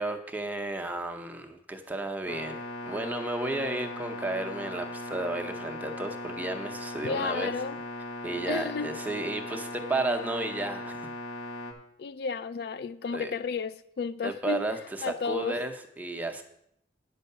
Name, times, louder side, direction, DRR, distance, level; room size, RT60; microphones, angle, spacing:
voice 1, 0.0-7.5 8.2-11.1 13.1-13.3 14.2-16.4, right 2 dB, 10° right, 0.7 m, -33 dB
sound 1, 2.3-11.7, left 2 dB, 75° left, 1.4 m, -38 dB
voice 2, 7.0-7.8 8.5-9.0 12.0-14.7 15.0-15.6, left 5 dB, 55° left, 0.3 m, -32 dB
9.4 x 5.4 x 6.7 m
head